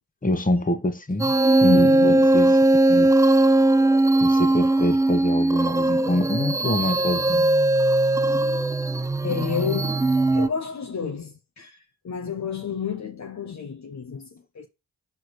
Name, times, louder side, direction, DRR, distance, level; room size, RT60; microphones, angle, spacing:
voice 1, 0.2-1.3 1.6-2.6 2.9-3.1 4.2-7.5, left 1 dB, 20° left, 1.4 m, -25 dB
sound 1, 1.2-10.5, right 2 dB, 10° right, 0.3 m, -19 dB
voice 2, 1.7-2.3 9.2-10.1 10.3-14.7, left 6 dB, 50° left, 1.0 m, -31 dB
4.7 x 4.5 x 4.9 m
supercardioid pair, 40°, 37 cm